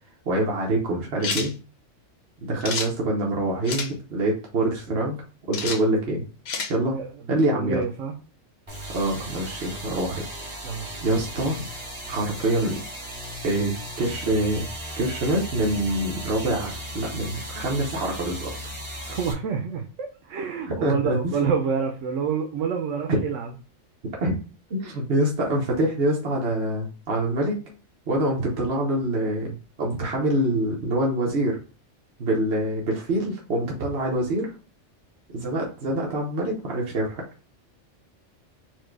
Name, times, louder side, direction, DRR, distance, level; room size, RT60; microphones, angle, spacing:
voice 1, 0.3-1.5 2.4-5.2 5.5-6.2 6.7-7.0 7.3-7.8 8.9-10.2 11.0-11.6 12.1-12.8 13.4-14.7 15.0-18.5 20.8-21.4 23.1-23.2 24.2-24.4 24.7-27.6 28.1-31.6 32.2-34.5 35.3-37.2, right 1 dB, 60° right, -1 dB, 1.2 m, -25 dB
sound 1, 1.2-1.5 2.6-2.9 3.6-3.9 5.5-5.8 6.4-6.7, left 5 dB, 60° left, 0.9 m, -29 dB
voice 2, 6.9-8.1 10.6-10.9 19.1-23.5, right 6 dB, 80° right, 2 dB, 1.0 m, -28 dB
sound 2, 8.7-19.3, equal, 25° right, 1.4 m, -36 dB
4.6 x 2.2 x 4.5 m, 0.36 s
omnidirectional pair, 1.2 m